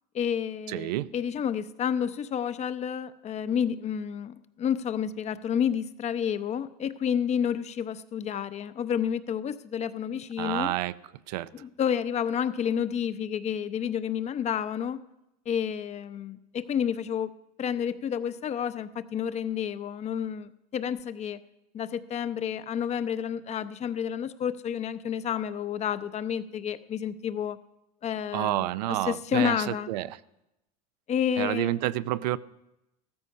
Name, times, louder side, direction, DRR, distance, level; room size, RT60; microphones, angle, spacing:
voice 1, 0.1-10.8 11.5-15.0 15.5-17.3 17.6-21.4 21.7-27.6 28.0-29.9 31.1-31.8, left 8 dB, 35° left, 13 dB, 0.7 m, -30 dB
voice 2, 0.7-1.1 10.4-10.9 11.3-11.5 28.3-30.1 31.4-32.4, right 15 dB, 85° right, 16 dB, 0.6 m, -29 dB
14.5 x 13.5 x 5.5 m, 0.89 s
supercardioid pair, 115°, 21 cm